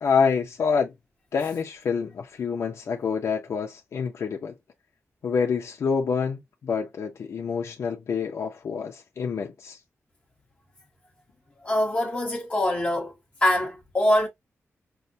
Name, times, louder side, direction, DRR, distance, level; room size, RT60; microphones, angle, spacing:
voice 1, 0.0-0.9 1.3-4.5 5.2-9.8, left 6 dB, 65° left, 0.6 m, -27 dB
voice 2, 11.6-13.1 13.4-14.3, left 1 dB, 25° left, 1.1 m, -23 dB
5.6 x 2.1 x 2.6 m
wide cardioid pair, 175°, 5 cm